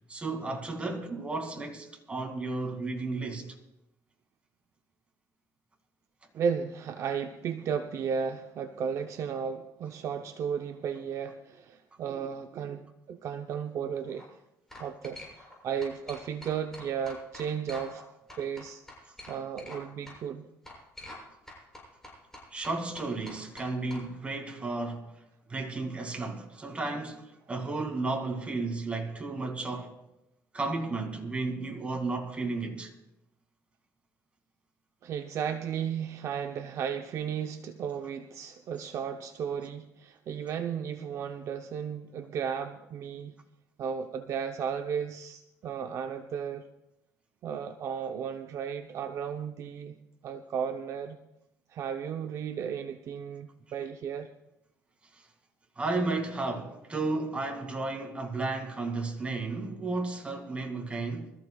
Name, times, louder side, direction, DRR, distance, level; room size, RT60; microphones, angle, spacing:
voice 1, 0.1-3.5 22.5-25.1 25.5-30.0 30.5-32.9 55.8-61.3, right 3 dB, 20° right, 2.3 m, -33 dB
voice 2, 6.3-14.3 14.8-18.0 18.4-18.8 19.3-20.5 35.0-43.4 43.8-46.6 47.4-50.0 50.2-51.2 51.7-54.3, right 7 dB, 55° right, 0.7 m, -34 dB
sound 1, 13.9-14.2 14.7-15.6 15.8-18.0 18.3-19.8 20.1-20.2 20.7-21.2 21.5-24.0, left 1 dB, 5° left, 6.6 m, -46 dB
24.5 x 14.0 x 2.3 m
cardioid pair, 115°, 6 cm